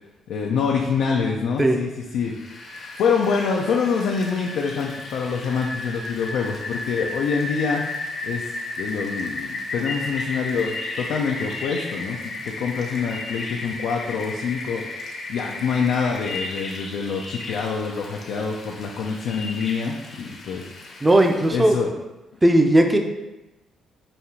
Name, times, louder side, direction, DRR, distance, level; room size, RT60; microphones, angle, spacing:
voice 1, 0.3-2.3 2.6-7.9 8.2-8.5 8.8-12.2 12.4-15.0 15.3-21.0 21.5-21.9, left 5 dB, 80° left, -1 dB, 0.4 m, -26 dB
Rain, 2.3-21.7, left 2 dB, 50° left, 0.7 m, -34 dB
voice 2, 21.0-21.8 22.4-23.0, right 1 dB, 15° right, 4 dB, 0.5 m, -16 dB
5.1 x 2.3 x 2.8 m, 1.0 s
cardioid pair, 90°, 0 cm